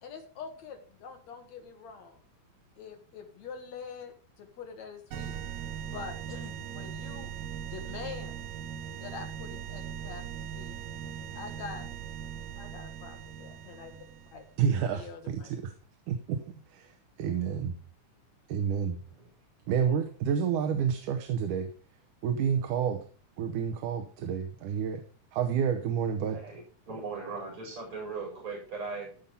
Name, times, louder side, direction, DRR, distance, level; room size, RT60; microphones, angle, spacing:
voice 1, 0.0-2.2 2.8-5.3 5.8-7.3 7.6-8.4 9.0-10.2 10.5-10.8 11.3-11.9 12.6-13.9 14.3-14.5 14.9-15.5, left 6 dB, 65° left, 5 dB, 2.8 m, -44 dB
sound 1, 5.1-14.5, right 9 dB, 70° right, 2.1 m, -40 dB
voice 2, 14.6-15.7 16.1-16.4 16.7-17.8 18.5-19.0 19.7-21.7 22.2-23.0 23.4-25.0 25.3-26.4, right 7 dB, 90° right, 6 dB, 2.6 m, -29 dB
voice 3, 26.3-26.6 26.9-29.2, right 4 dB, 40° right, -3 dB, 5.3 m, -39 dB
14.5 x 5.8 x 5.4 m, 0.41 s
omnidirectional pair, 3.5 m